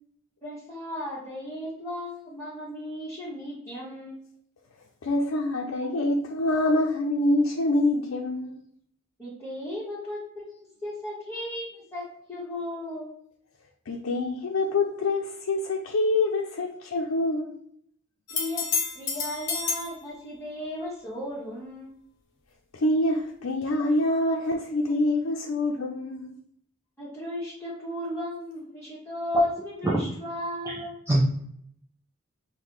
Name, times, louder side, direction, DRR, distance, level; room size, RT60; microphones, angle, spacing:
voice 1, 0.4-4.3 9.2-12.0 12.3-13.2 18.3-18.7 18.9-21.9 27.0-31.0, left 1 dB, 15° left, -10 dB, 1.1 m, -36 dB
voice 2, 5.0-8.6 13.9-17.5 22.7-26.3, left 2 dB, 90° left, -1 dB, 0.5 m, -26 dB
sound 1, 18.3-19.9 23.6-23.7, left 5 dB, 65° left, 0.8 m, -29 dB
voice 3, 30.6-31.2, right 1 dB, 10° right, -5 dB, 0.5 m, -24 dB
5.6 x 2.1 x 3.1 m, 0.67 s
head